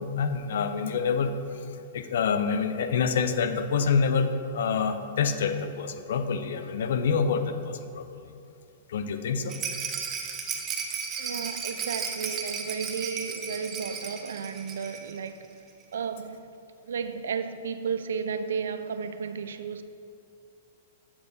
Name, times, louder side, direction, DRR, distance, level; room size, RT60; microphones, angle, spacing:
voice 1, 0.0-8.2 8.9-9.6, left 5 dB, 70° left, 0.4 m, -27 dB
Rattle, 9.5-15.2 15.4-15.5 15.8-15.9, right 6 dB, 25° right, 0.7 m, -34 dB
voice 2, 11.2-15.5 15.9-16.5 16.8-19.8, right 6 dB, 80° right, 0.3 m, -33 dB
7.5 x 3.4 x 4.0 m
hypercardioid pair, 115°, 0 cm